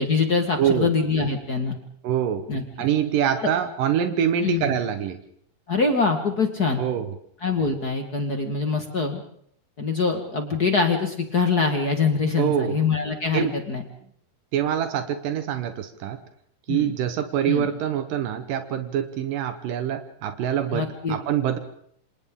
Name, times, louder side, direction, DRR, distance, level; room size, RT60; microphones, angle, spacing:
voice 1, 0.0-1.8 2.5-2.6 3.4-3.5 4.4-4.7 5.7-6.8 7.4-9.2 9.8-13.8 16.7-16.9 17.5-17.7 20.7-21.2, left 4 dB, 40° left, 4 dB, 1.5 m, -24 dB
voice 2, 0.6-0.9 2.0-2.5 2.8-5.2 6.8-7.1 12.4-12.8 13.3-13.5 14.5-16.2 16.7-21.6, right 9 dB, 75° right, 8 dB, 2.7 m, -25 dB
28.0 x 27.0 x 3.7 m, 0.65 s
omnidirectional pair, 3.9 m